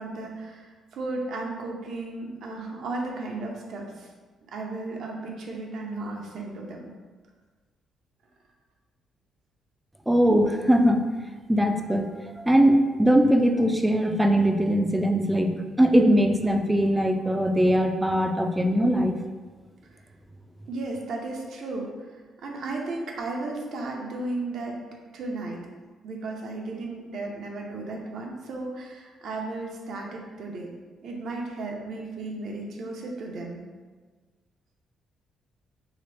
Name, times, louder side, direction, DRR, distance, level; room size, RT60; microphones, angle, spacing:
voice 1, 0.0-4.1 4.5-6.9 20.7-24.8 25.1-25.6 26.0-30.7 31.0-33.6, right 2 dB, 70° right, 0 dB, 0.6 m, -34 dB
voice 2, 10.1-11.0 11.5-12.1 12.4-19.2, equal, 10° right, 4 dB, 0.3 m, -21 dB
2.9 x 2.8 x 3.3 m, 1.4 s
cardioid pair, 90°, 0 cm